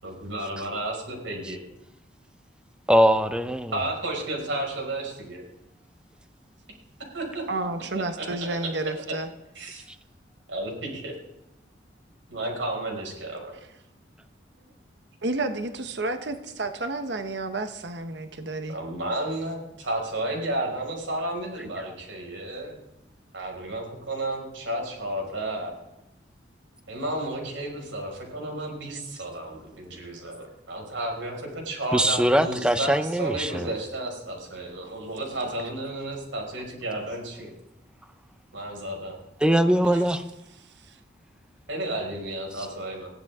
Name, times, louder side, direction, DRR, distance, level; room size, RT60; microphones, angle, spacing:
voice 1, 0.0-1.6 3.7-5.4 7.1-7.4 8.1-8.6 9.6-9.8 10.5-11.1 12.3-13.5 18.7-22.8 23.3-25.8 26.9-37.5 38.5-39.2 39.8-40.0 41.7-43.1, right 1 dB, 80° right, 0 dB, 5.8 m, -32 dB
voice 2, 2.9-3.8 21.8-21.9 31.9-33.7 39.4-40.2 42.6-42.7, equal, 5° right, 9 dB, 0.8 m, -22 dB
voice 3, 7.5-9.3 15.2-18.7 40.8-41.0, right 2 dB, 65° right, 7 dB, 1.2 m, -31 dB
21.5 x 15.5 x 3.7 m, 0.90 s
head